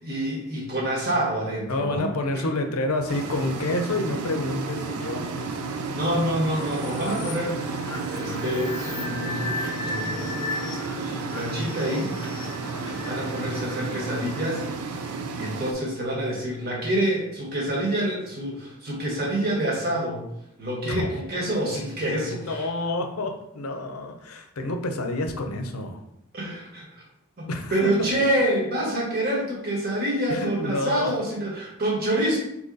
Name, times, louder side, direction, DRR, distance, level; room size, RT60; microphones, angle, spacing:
voice 1, 0.0-2.1 2.3-2.4 5.9-7.8 8.1-10.4 11.1-12.1 13.1-14.6 15.3-20.3 20.6-22.7 26.3-26.9 27.4-32.4, right 1 dB, 45° right, -3 dB, 1.2 m, -27 dB
voice 2, 1.7-5.6 12.7-13.5 20.8-21.1 22.3-26.0 27.5-27.9 30.3-31.1, left 2 dB, 80° left, 5 dB, 0.6 m, -29 dB
sound 1, 3.1-15.7, right 3 dB, 85° right, 0.5 m, -32 dB
sound 2, 6.5-15.1, left 2 dB, 20° left, 0.5 m, -36 dB
3.9 x 2.9 x 3.8 m, 0.80 s
head